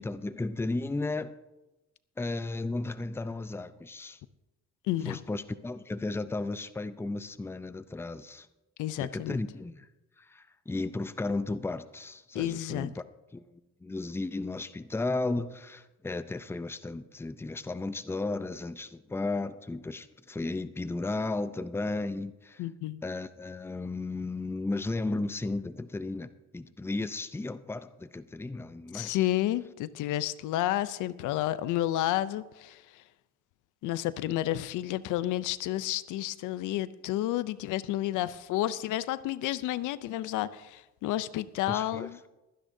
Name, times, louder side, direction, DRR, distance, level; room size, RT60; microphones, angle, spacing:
voice 1, 0.0-1.3 2.2-4.2 5.0-8.5 9.0-9.9 10.2-13.0 13.3-22.6 23.0-29.2 41.7-42.3, left 2 dB, 10° left, 0.5 m, -34 dB
voice 2, 4.9-5.2 8.8-9.4 12.3-12.9 22.6-23.0 28.9-33.0 33.8-42.2, left 14 dB, 90° left, 0.5 m, -31 dB
22.5 x 10.0 x 2.7 m
cardioid pair, 90°, 30 cm